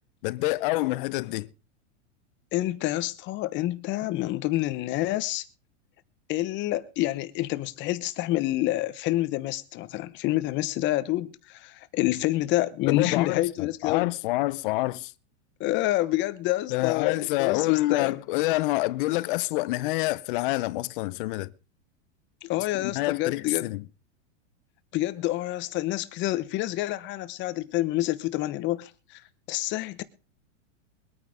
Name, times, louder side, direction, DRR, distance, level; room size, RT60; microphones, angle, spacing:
voice 1, 0.2-1.5 12.9-15.1 16.7-21.5 22.7-23.8, left 19 dB, 45° left, 0.6 m, -27 dB
voice 2, 2.5-5.4 6.3-14.1 15.6-18.1 22.4-23.7 24.9-29.2 29.5-30.0, left 16 dB, 30° left, 1.0 m, -28 dB
23.0 x 9.3 x 3.5 m
supercardioid pair, 145°, 36 cm